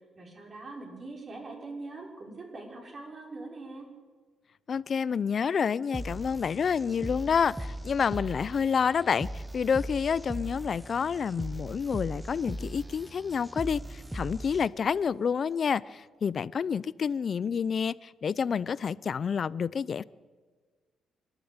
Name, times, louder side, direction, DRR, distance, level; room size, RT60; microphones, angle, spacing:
voice 1, 0.2-3.9, right 3 dB, 40° right, 0 dB, 5.8 m, -42 dB
voice 2, 4.7-20.0, left 6 dB, 50° left, 19 dB, 0.6 m, -29 dB
sound 1, 5.9-14.9, right 1 dB, 10° right, 1.0 m, -39 dB
26.0 x 12.0 x 8.9 m, 1.4 s
cardioid pair, 90°, 0 cm